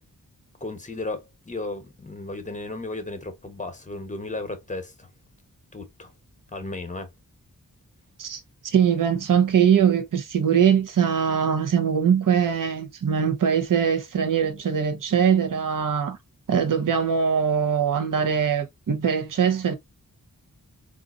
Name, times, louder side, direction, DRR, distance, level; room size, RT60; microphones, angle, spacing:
voice 1, 0.6-5.1 5.7-6.1 6.5-7.1, left 2 dB, 20° left, 0.9 m, -34 dB
voice 2, 8.2-16.2 16.5-19.7, right 7 dB, 65° right, 0.7 m, -22 dB
3.8 x 2.5 x 2.4 m
wide cardioid pair, 90°, 34 cm